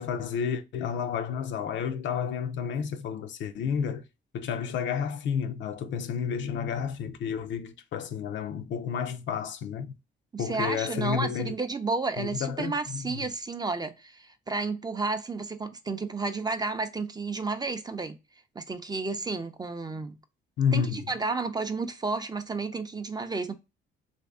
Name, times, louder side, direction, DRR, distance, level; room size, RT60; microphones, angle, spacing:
voice 1, 0.0-4.0 4.3-9.9 10.4-11.5 12.2-13.3 20.6-21.1, left 7 dB, 70° left, 0.5 m, -31 dB
voice 2, 10.3-18.2 18.6-20.2 20.7-23.6, right 3 dB, 20° right, 0.5 m, -32 dB
3.1 x 2.6 x 3.4 m
cardioid pair, 90°, 20 cm